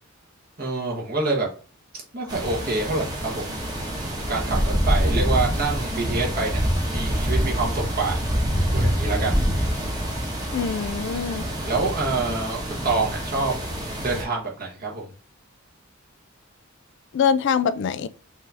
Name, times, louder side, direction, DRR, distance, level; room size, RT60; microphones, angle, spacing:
voice 1, 0.6-1.5 2.1-3.4 4.3-6.6 6.9-8.2 8.7-9.4 11.6-13.5 14.0-15.0, right 3 dB, 45° right, 1.3 m, -26 dB
sound 1, 2.3-14.2, equal, 20° right, 1.1 m, -26 dB
voice 2, 10.5-11.5 17.1-18.1, left 7 dB, 60° left, 0.3 m, -23 dB
5.3 x 2.7 x 3.4 m
head